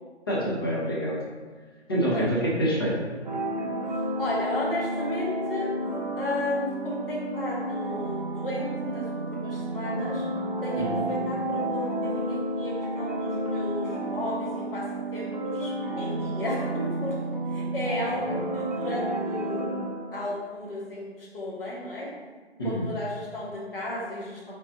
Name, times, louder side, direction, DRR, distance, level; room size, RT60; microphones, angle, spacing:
voice 1, 0.3-1.2 1.9-2.9 10.8-11.0 18.3-18.4 22.6-22.9, right 1 dB, 20° left, -5 dB, 0.7 m, -26 dB
sound 1, 3.2-20.5, right 1 dB, 40° right, 0.6 m, -31 dB
voice 2, 4.2-5.7 6.2-10.3 10.6-17.1 17.5-19.8 20.1-22.1 22.6-24.5, left 1 dB, 55° left, -5 dB, 1.4 m, -33 dB
3.9 x 3.6 x 2.7 m, 1.4 s
figure-of-eight pair, 150°, 34 cm